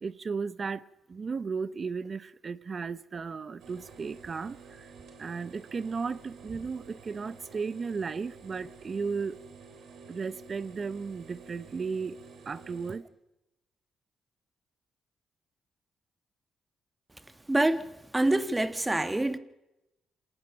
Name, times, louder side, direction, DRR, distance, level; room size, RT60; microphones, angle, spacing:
voice 1, 0.0-4.9 5.2-9.4 10.1-12.2 12.5-13.1, right 5 dB, 45° right, 0.9 m, -35 dB
sound 1, 3.6-13.0, right 5 dB, 85° right, 3.3 m, -51 dB
voice 2, 17.5-19.4, right 2 dB, 15° right, 1.4 m, -26 dB
27.0 x 18.0 x 5.9 m
cardioid pair, 70°, 0 cm